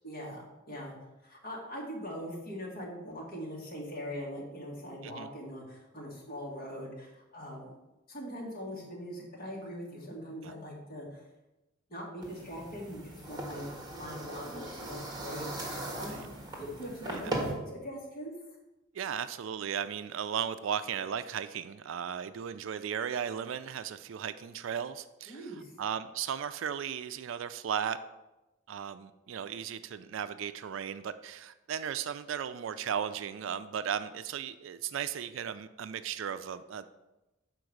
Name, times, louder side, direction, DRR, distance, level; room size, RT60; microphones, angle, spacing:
voice 1, 0.0-0.9 1.2-7.8 8.1-11.1 11.9-16.2 16.6-17.4 17.7-18.3 25.3-25.7, equal, 50° left, -3 dB, 2.0 m, -41 dB
sound 1, 12.2-17.5, right 1 dB, 20° right, 1.5 m, -39 dB
voice 2, 18.9-28.0 28.7-36.9, right 8 dB, 70° right, 12 dB, 0.4 m, -36 dB
5.8 x 4.5 x 6.4 m, 1.0 s
head